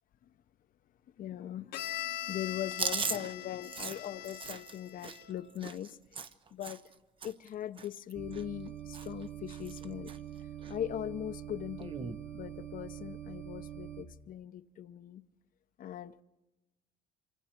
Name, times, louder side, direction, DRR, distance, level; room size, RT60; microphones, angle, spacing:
voice 1, 1.2-6.2 6.5-6.8 7.2-10.1 10.7-15.2 15.8-16.2, left 11 dB, 55° left, 13 dB, 0.8 m, -40 dB
Bowed string instrument, 1.7-5.5, left 11 dB, 80° left, 1.4 m, -41 dB
Chewing mastication, 2.7-6.9 7.2-7.5 7.8-8.7 8.9-9.2 9.5-10.2 10.6-10.7 11.8-12.2, right 5 dB, 30° right, 0.8 m, -39 dB
sound 1, 8.1-14.0, right 11 dB, 55° right, 2.7 m, -44 dB
26.0 x 24.5 x 4.5 m, 1.0 s
cardioid pair, 110°, 17 cm